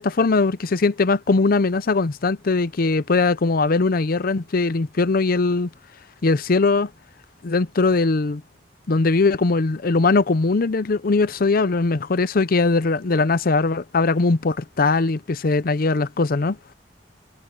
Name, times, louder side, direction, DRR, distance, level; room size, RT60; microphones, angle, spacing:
voice 1, 0.0-5.7 6.2-6.9 7.4-8.4 8.9-16.6, left 3 dB, 55° left, 0.6 m, -20 dB
head